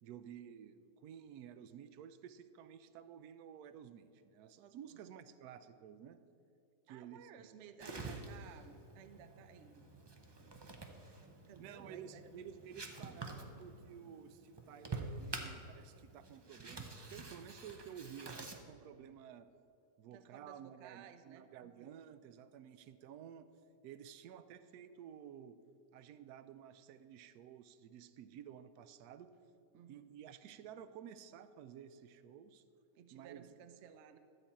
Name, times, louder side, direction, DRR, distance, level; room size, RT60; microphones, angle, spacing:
voice 1, 0.0-6.2 6.9-7.6 11.6-19.5 20.0-23.5 23.8-25.6 25.9-29.3 29.9-32.6 33.1-33.5, right 9 dB, 80° right, 11 dB, 1.1 m, -53 dB
voice 2, 6.9-9.9 10.4-10.6 10.8-11.0 11.5-12.3 17.7-18.0 20.1-21.9 28.3-28.4 29.7-30.1 32.9-34.2, right 8 dB, 65° right, 10 dB, 0.8 m, -57 dB
sound 1, 7.8-18.6, right 3 dB, 35° right, 0.4 m, -48 dB
13.0 x 4.4 x 8.3 m, 2.6 s
omnidirectional pair, 1.6 m